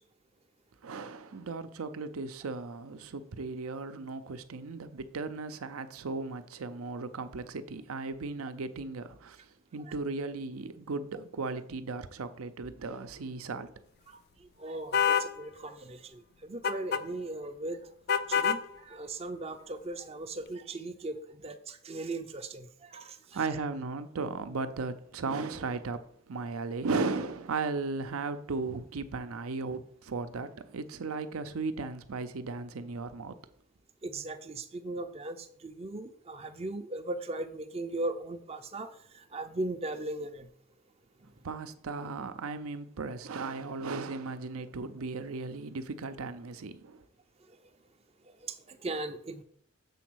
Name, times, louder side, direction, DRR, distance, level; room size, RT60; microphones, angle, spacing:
voice 1, 0.8-13.7 23.3-33.3 41.4-47.0, right 4 dB, 85° right, 0.6 m, -36 dB
voice 2, 14.6-17.8 18.3-21.2 21.4-23.4 34.0-38.9 39.3-40.5 48.4-49.4, right 2 dB, 30° right, 0.5 m, -38 dB
sound 1, 14.9-15.3 16.6-17.0 18.1-18.6, left 7 dB, 50° left, 0.3 m, -26 dB
6.9 x 4.0 x 6.2 m
head